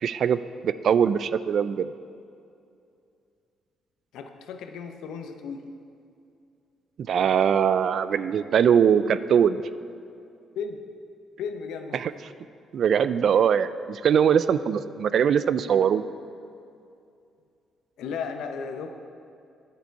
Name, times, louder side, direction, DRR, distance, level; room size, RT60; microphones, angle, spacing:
voice 1, 0.0-1.9 7.1-9.6 11.9-12.1 12.7-16.0, right 8 dB, 60° right, 14 dB, 0.3 m, -22 dB
voice 2, 4.1-5.6 10.5-10.8 11.4-12.0 18.0-18.9, left 6 dB, 85° left, 6 dB, 0.7 m, -34 dB
10.5 x 6.7 x 4.6 m, 2.5 s
cardioid pair, 90°, 0 cm